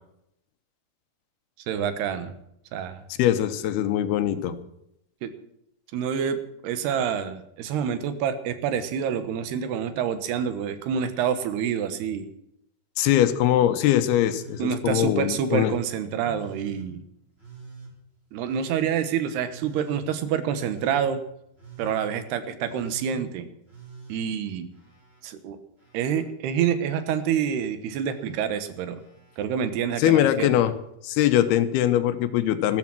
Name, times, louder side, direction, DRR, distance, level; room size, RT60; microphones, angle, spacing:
voice 1, 1.7-2.3 2.7-3.0 5.2-5.3 5.9-6.4 6.6-12.3 14.6-17.0 18.3-21.2 21.8-23.5 24.1-24.7 25.2-25.6 25.9-29.0 29.4-30.5, right 8 dB, 85° right, 11 dB, 3.4 m, -27 dB
voice 2, 3.2-4.6 13.0-15.7 30.0-30.7 31.0-32.8, left 12 dB, 80° left, 10 dB, 2.9 m, -22 dB
Telephone, 14.2-14.8 15.3-15.8 16.3-16.9 17.4-17.9 18.4-19.0 19.5-20.0 20.5-21.1 21.5-22.1 22.6-23.2 23.6-25.2 25.5-26.3 26.8-27.3 27.9-28.4 28.9-29.4 30.6-30.7, right 5 dB, 15° right, 6.1 m, -46 dB
14.0 x 13.5 x 6.1 m, 0.78 s
omnidirectional pair, 4.5 m